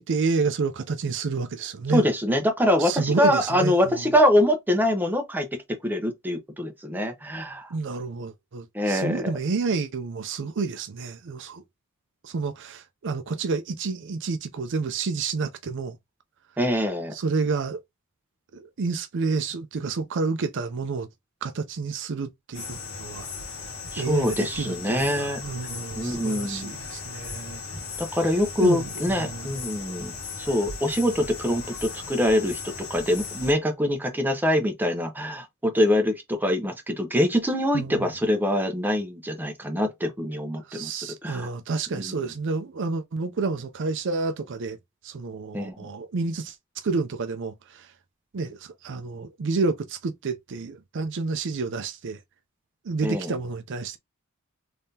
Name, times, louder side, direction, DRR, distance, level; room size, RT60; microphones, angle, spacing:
voice 1, 0.0-2.1 2.8-4.1 7.7-11.6 12.2-16.0 17.1-17.8 18.5-21.1 21.4-23.3 24.0-27.6 28.6-29.6 37.7-38.1 40.7-44.8 45.0-47.9 48.3-52.2 52.8-54.0, right 4 dB, 55° right, 0.5 m, -29 dB
voice 2, 1.9-7.7 8.7-9.3 16.6-17.1 23.9-25.4 26.0-26.7 28.0-30.1 30.4-41.5 41.9-42.3 45.5-45.7 53.0-53.3, left 1 dB, 10° right, 0.9 m, -24 dB
sound 1, 22.5-33.5, left 4 dB, 70° left, 1.7 m, -37 dB
3.6 x 3.3 x 2.8 m
head